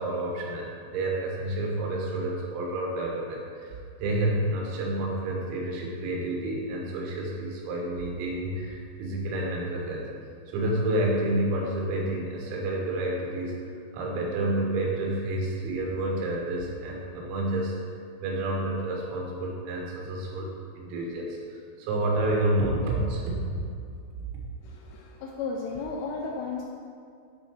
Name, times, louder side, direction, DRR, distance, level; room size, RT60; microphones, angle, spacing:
voice 1, 0.0-10.1 10.5-17.8 18.2-23.5, right 1 dB, 85° right, -1 dB, 4.0 m, -29 dB
voice 2, 24.6-26.6, left 4 dB, 85° left, -1 dB, 3.0 m, -34 dB
9.0 x 3.9 x 5.9 m, 2.4 s
omnidirectional pair, 5.9 m